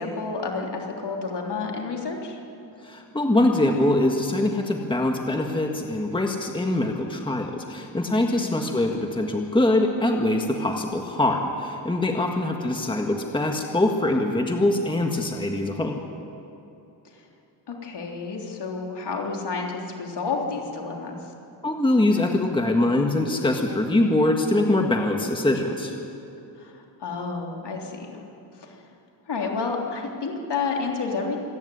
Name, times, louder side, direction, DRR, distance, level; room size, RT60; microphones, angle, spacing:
voice 1, 0.0-2.4 8.1-8.5 12.1-12.5 17.1-17.2 17.7-21.2 26.6-28.2 28.6-28.8 29.3-31.4, left 4 dB, 60° left, 0 dB, 3.5 m, -30 dB
voice 2, 2.8-16.0 21.6-26.0, left 1 dB, 10° left, 2 dB, 1.7 m, -23 dB
27.0 x 10.5 x 9.9 m, 2.8 s
cardioid pair, 90°, 47 cm